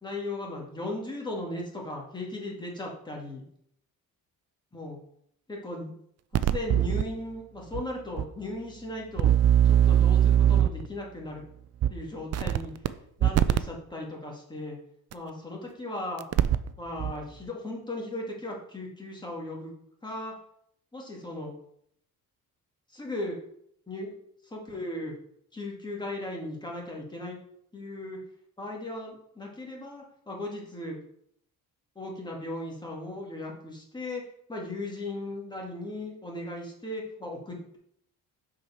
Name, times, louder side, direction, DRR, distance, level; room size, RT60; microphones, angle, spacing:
voice 1, 0.0-3.4 4.7-5.0 5.5-5.9 6.4-9.3 9.6-11.4 11.9-12.7 13.2-14.8 15.1-16.2 16.8-19.7 20.0-20.4 20.9-21.5 22.9-23.4 23.9-24.1 24.4-25.1 25.5-27.4 27.7-28.2 28.6-31.0 32.0-34.2 34.5-37.8, left 1 dB, 10° left, -1 dB, 2.1 m, -37 dB
sound 1, 6.3-7.0 7.7-7.8 8.2-8.3 9.2-10.9 11.8-11.9 12.3-12.9 13.2-13.6 15.1-15.2 16.2-16.7 17.0-17.1, right 10 dB, 45° right, 0.4 m, -21 dB
6.2 x 4.8 x 5.6 m, 0.69 s
cardioid pair, 115°, 36 cm